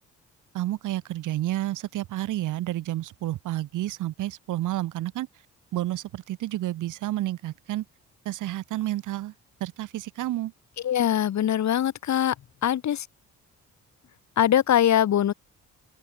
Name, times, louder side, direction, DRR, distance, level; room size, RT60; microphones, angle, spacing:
voice 1, 0.5-5.3 5.7-7.8 8.3-9.3 9.6-10.5, right 14 dB, 85° right, 3.8 m, -30 dB
voice 2, 10.8-12.3 12.6-13.1 14.4-15.3, left 10 dB, 65° left, 4.9 m, -22 dB
open air
cardioid pair, 90°, 30 cm